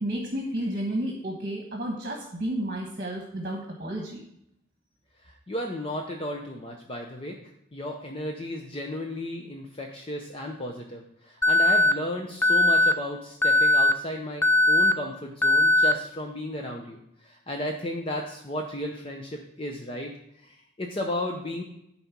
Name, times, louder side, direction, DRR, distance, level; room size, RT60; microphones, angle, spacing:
voice 1, 0.0-4.2, right 1 dB, 45° right, 0 dB, 1.3 m, -31 dB
voice 2, 5.2-7.4 7.7-20.1 20.4-21.6, left 1 dB, 30° left, 1 dB, 0.7 m, -34 dB
Alarm, 11.4-11.9 12.4-12.9 13.4-13.9 14.4-14.9 15.4-15.9, left 1 dB, 10° left, 0.3 m, -19 dB
10.5 x 4.2 x 5.9 m, 0.79 s
head